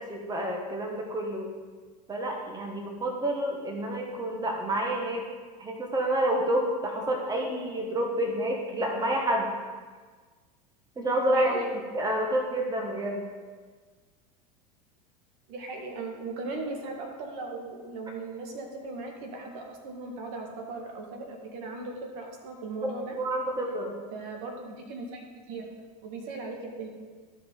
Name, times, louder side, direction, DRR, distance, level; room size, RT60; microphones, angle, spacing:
voice 1, 0.0-1.5 2.1-5.2 5.6-9.5 11.0-11.6 11.9-13.2 22.8-24.0, right 1 dB, 20° right, 1 dB, 1.6 m, -29 dB
voice 2, 11.3-11.8 15.5-23.2 24.1-25.7 26.0-26.9, right 3 dB, 60° right, 1 dB, 1.8 m, -38 dB
14.5 x 5.3 x 3.8 m, 1.5 s
hypercardioid pair, 90°, 21 cm